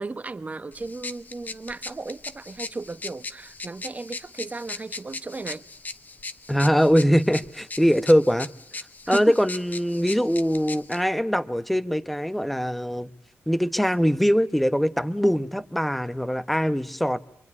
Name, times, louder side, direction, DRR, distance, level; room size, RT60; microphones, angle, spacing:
voice 1, 0.0-5.6 9.1-9.4, right 3 dB, 30° right, 1.2 m, -35 dB
sound 1, 0.7-11.0, left 3 dB, 35° left, 1.0 m, -39 dB
voice 2, 6.5-8.5 9.1-13.1 13.5-17.2, equal, ahead, 1.0 m, -22 dB
26.0 x 23.0 x 9.7 m
cardioid pair, 80°, 5 cm